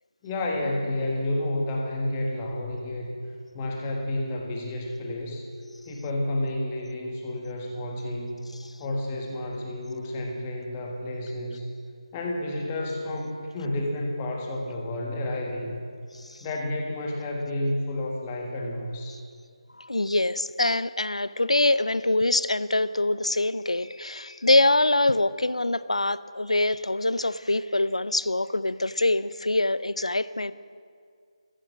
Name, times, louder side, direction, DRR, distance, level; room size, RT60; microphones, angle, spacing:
voice 1, 0.2-3.1 3.5-5.4 5.8-8.5 8.8-11.7 12.1-15.8 16.4-19.2, left 1 dB, 15° left, 0 dB, 1.7 m, -30 dB
voice 2, 19.8-30.5, left 2 dB, 70° left, 16 dB, 0.6 m, -24 dB
16.5 x 14.0 x 6.4 m, 2.1 s
figure-of-eight pair, 155°, 3 cm